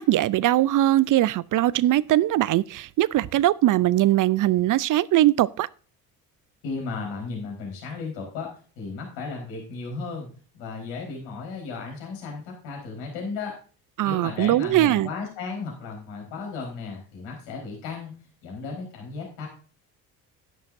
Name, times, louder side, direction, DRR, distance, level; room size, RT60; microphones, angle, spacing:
voice 1, 0.0-5.7 14.0-15.1, right 14 dB, 45° right, 0.5 m, -21 dB
voice 2, 6.6-8.5 8.8-10.3 10.5-13.6 14.0-18.1 18.4-19.5, left 4 dB, 75° left, 4.4 m, -35 dB
11.0 x 11.0 x 2.6 m
hypercardioid pair, 55°, 46 cm